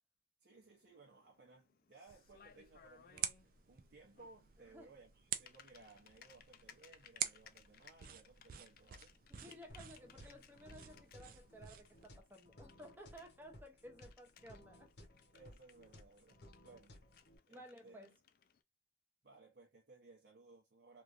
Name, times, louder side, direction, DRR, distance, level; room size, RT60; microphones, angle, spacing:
voice 1, 0.4-9.1 15.3-16.9 17.5-18.0 19.2-21.0, right 3 dB, 65° right, 0.7 m, -61 dB
Typing, 0.5-18.6, left 8 dB, 55° left, 0.3 m, -65 dB
sound 1, 2.1-12.1, right 10 dB, 50° right, 0.4 m, -48 dB
voice 2, 9.3-15.1 17.5-18.1, equal, 10° right, 0.7 m, -56 dB
sound 2, 9.7-17.4, left 1 dB, 70° left, 0.8 m, -60 dB
3.1 x 2.4 x 2.5 m
head